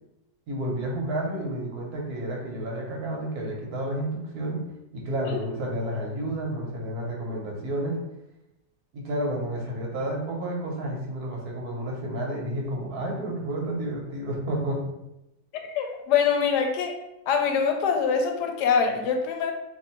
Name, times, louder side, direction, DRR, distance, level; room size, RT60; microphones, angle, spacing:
voice 1, 0.5-4.6 4.9-8.0 8.9-14.8 16.4-16.5, right 1 dB, 65° right, -1 dB, 1.3 m, -31 dB
voice 2, 15.6-16.9 17.3-19.5, left 6 dB, 80° left, 4 dB, 1.2 m, -24 dB
2.9 x 2.6 x 4.3 m, 0.92 s
omnidirectional pair, 1.8 m